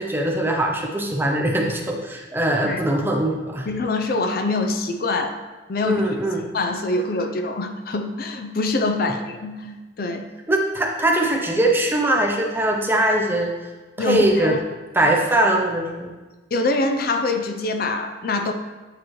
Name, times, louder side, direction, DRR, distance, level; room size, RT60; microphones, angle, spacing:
voice 1, 0.0-3.7 5.8-6.4 10.5-13.5 14.0-14.5 14.9-16.1, right 1 dB, 10° right, 1 dB, 0.6 m, -21 dB
voice 2, 3.7-5.4 5.7-6.0 6.4-10.3 14.0-14.6 16.5-18.5, left 2 dB, 50° left, 6 dB, 0.5 m, -24 dB
8.3 x 4.6 x 3.1 m, 1.3 s
head